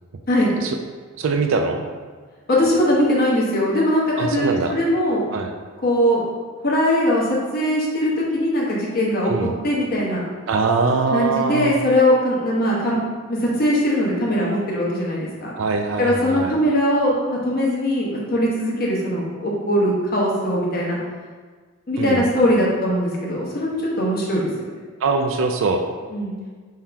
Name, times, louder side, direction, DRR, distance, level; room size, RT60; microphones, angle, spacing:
voice 1, 1.2-1.9 4.2-4.7 5.3-5.5 9.3-9.5 10.5-11.8 15.6-16.5 22.0-22.3 25.0-25.8, right 4 dB, 65° right, 4 dB, 0.4 m, -22 dB
voice 2, 2.5-5.2 5.8-6.3 6.6-10.2 11.1-13.0 13.3-15.5 16.0-21.0 21.9-24.7 26.1-26.3, equal, 45° left, -5 dB, 1.0 m, -20 dB
3.8 x 2.8 x 4.6 m, 1.5 s
head